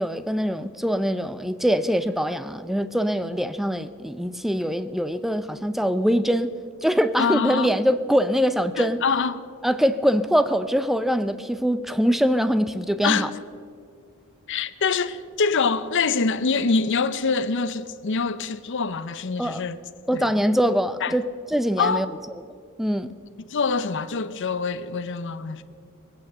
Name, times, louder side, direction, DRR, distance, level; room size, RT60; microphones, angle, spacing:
voice 1, 0.0-6.5 6.8-9.0 9.6-13.3 19.4-19.6 20.1-22.1 22.8-23.1, equal, ahead, 0.4 m, -23 dB
voice 2, 7.2-7.7 8.8-9.4 13.0-13.3 14.5-19.8 20.1-20.3 21.0-21.1 21.8-22.1 23.5-25.6, left 5 dB, 55° left, 0.6 m, -25 dB
20.0 x 8.8 x 6.8 m
head